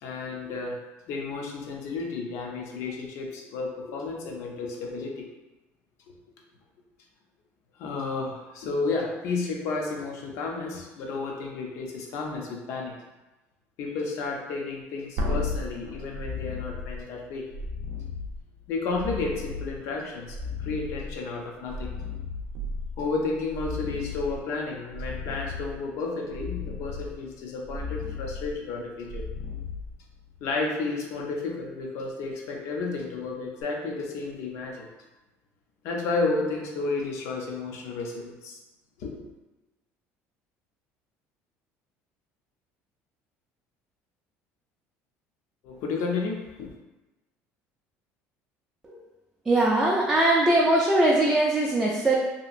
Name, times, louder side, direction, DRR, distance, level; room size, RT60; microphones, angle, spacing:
voice 1, 0.0-0.8 1.1-5.2 7.8-12.9 13.8-17.5 18.7-21.9 23.0-29.3 30.4-34.9 35.8-38.6 39.0-39.3 45.6-46.7, left 3 dB, 65° left, 0 dB, 0.5 m, -32 dB
sound 1, 15.2-30.5 33.6-33.7, left 3 dB, 75° right, 0.4 m, -35 dB
voice 2, 49.5-52.2, right 1 dB, 10° right, -5 dB, 0.3 m, -21 dB
2.8 x 2.4 x 2.5 m, 1.1 s
cardioid pair, 150°, 5 cm